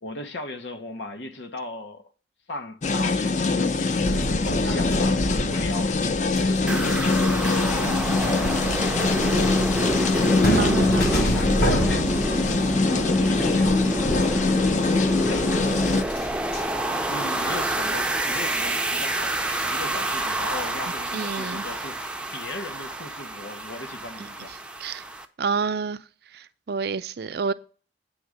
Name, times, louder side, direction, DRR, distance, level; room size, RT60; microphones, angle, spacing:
voice 1, 0.0-2.1 2.5-6.1 6.4-9.5 11.2-15.7 17.1-22.0 22.3-24.5, left 2 dB, 80° left, 1.0 m, -37 dB
sound 1, 2.8-16.0, left 3 dB, 45° left, 0.5 m, -23 dB
sound 2, 4.0-16.6, equal, 60° left, 1.3 m, -30 dB
sound 3, 6.7-25.2, right 1 dB, 5° right, 0.5 m, -28 dB
voice 2, 10.6-11.1 21.1-21.6 24.8-25.0 25.4-26.0 26.3-27.5, right 5 dB, 60° right, 0.5 m, -28 dB
8.8 x 3.6 x 6.4 m
head